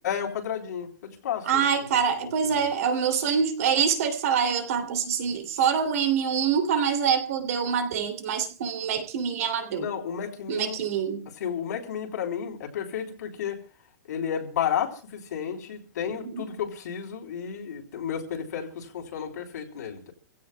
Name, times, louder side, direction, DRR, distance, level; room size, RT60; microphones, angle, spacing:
voice 1, 0.0-1.6 1.9-2.7 9.7-10.9 11.4-13.6 14.1-20.1, left 8 dB, 70° left, 3.6 m, -32 dB
voice 2, 1.5-9.9 10.5-11.3 16.1-16.4, right 7 dB, 55° right, 2.6 m, -25 dB
28.0 x 16.5 x 2.2 m
supercardioid pair, 175°, 10 cm